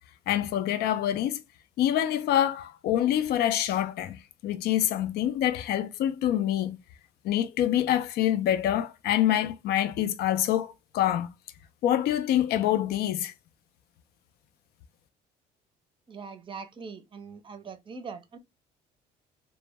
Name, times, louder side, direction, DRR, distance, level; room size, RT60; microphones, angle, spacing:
voice 1, 0.3-1.4 1.8-4.2 4.4-6.8 7.2-11.3 11.8-13.3, left 11 dB, 70° left, 0.4 m, -26 dB
voice 2, 16.1-18.4, right 5 dB, 30° right, 0.5 m, -42 dB
2.1 x 2.0 x 3.3 m
cardioid pair, 110°, 17 cm